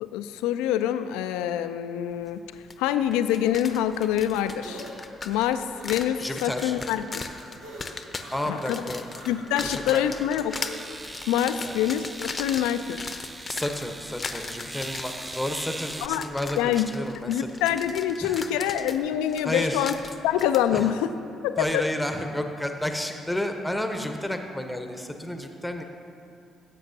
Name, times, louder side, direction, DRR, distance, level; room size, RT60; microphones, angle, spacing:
voice 1, 0.0-2.4 2.8-4.8 5.3-7.2 8.5-8.8 9.3-10.6 11.3-13.1 16.0-16.2 16.6-16.9 17.2-19.9 20.2-21.1 21.4-21.8, left 10 dB, 70° left, 11 dB, 0.4 m, -25 dB
sound 1, 2.7-2.8 3.1-20.6, left 4 dB, 35° left, 0.8 m, -38 dB
sound 2, 4.0-12.0, right 1 dB, 70° right, 1.8 m, -46 dB
voice 2, 6.2-6.8 8.3-9.0 9.6-10.1 11.6-11.7 13.5-17.5 18.2-18.4 19.4-19.9 20.7-20.9 21.6-25.8, left 1 dB, 5° left, 5 dB, 1.0 m, -31 dB
sound 3, 10.5-16.1, right 2 dB, 20° right, 0.6 m, -40 dB
18.5 x 8.3 x 2.7 m, 2.5 s
figure-of-eight pair, 45°, 0 cm